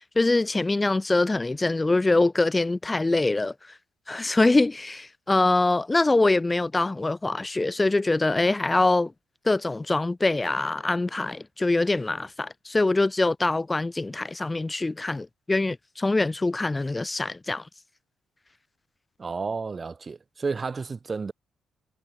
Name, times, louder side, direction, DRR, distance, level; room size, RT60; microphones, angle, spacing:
voice 1, 0.2-3.5 4.1-9.1 9.4-17.6, left 2 dB, 20° left, 2.6 m, -24 dB
voice 2, 19.2-21.3, right 4 dB, 30° right, 3.9 m, -31 dB
cardioid pair, 90°, 0 cm